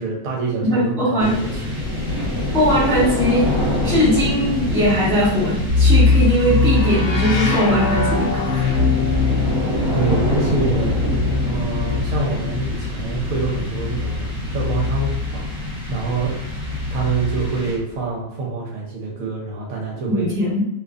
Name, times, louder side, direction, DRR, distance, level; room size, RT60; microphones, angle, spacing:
voice 1, 0.0-1.8 9.9-11.0 11.4-16.4 16.9-20.3, right 4 dB, 70° right, -2 dB, 1.0 m, -26 dB
voice 2, 0.6-1.4 2.1-2.3 2.5-3.4 3.8-8.8 20.1-20.6, equal, 5° left, -9 dB, 0.8 m, -20 dB
sound 1, 1.2-18.1, left 1 dB, 40° right, 1.0 m, -25 dB
sound 2, 5.7-15.5 16.5-17.5, left 4 dB, 70° left, 0.8 m, -22 dB
2.6 x 2.4 x 2.3 m, 0.79 s
omnidirectional pair, 1.6 m